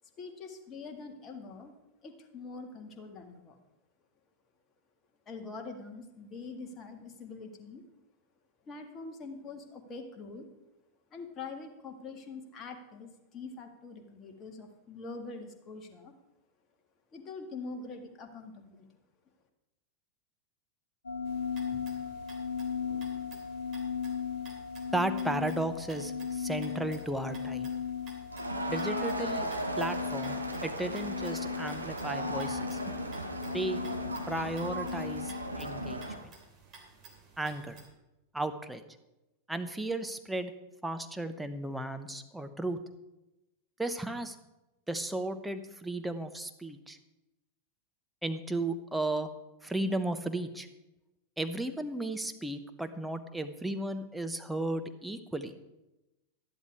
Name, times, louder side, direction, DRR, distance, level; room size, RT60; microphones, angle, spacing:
voice 1, 0.2-1.7 2.0-3.6 5.3-7.8 8.7-10.5 11.1-16.1 17.1-18.9, left 4 dB, 25° left, 4 dB, 1.8 m, -44 dB
sound 1, 21.0-36.0, left 7 dB, 75° left, 0.6 m, -37 dB
sound 2, 21.2-37.8, right 4 dB, 35° right, 3.0 m, -55 dB
voice 2, 24.9-27.7 28.7-29.5 29.7-32.8 33.5-33.8 34.3-36.3 37.4-37.8 38.3-38.8 39.5-40.5 40.8-42.8 43.8-44.4 44.9-47.0 48.2-49.3 49.6-50.7 51.4-55.5, right 2 dB, 5° right, 8 dB, 0.9 m, -34 dB
Crowd, 28.3-36.2, right 1 dB, 85° right, 1.1 m, -37 dB
12.5 x 11.0 x 4.8 m, 0.97 s
figure-of-eight pair, 90°, 0 cm